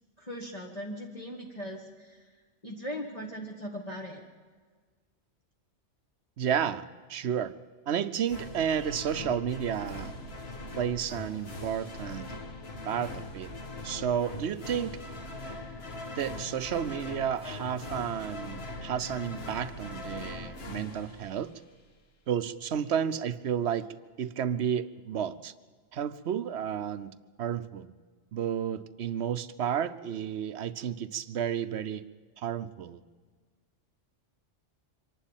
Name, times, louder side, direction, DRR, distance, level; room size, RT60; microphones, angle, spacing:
voice 1, 0.2-2.3 2.6-4.2, equal, 35° left, -2 dB, 1.8 m, -39 dB
voice 2, 6.4-7.5 7.9-10.1 10.8-12.3 12.8-13.5 13.8-15.0 16.2-21.5 22.3-25.5 25.9-27.9 28.3-32.0 32.4-33.0, right 8 dB, 65° right, 13 dB, 1.0 m, -32 dB
sound 1, 8.3-21.9, left 2 dB, 60° left, 1.7 m, -41 dB
25.0 x 11.5 x 9.0 m, 1.5 s
omnidirectional pair, 1.2 m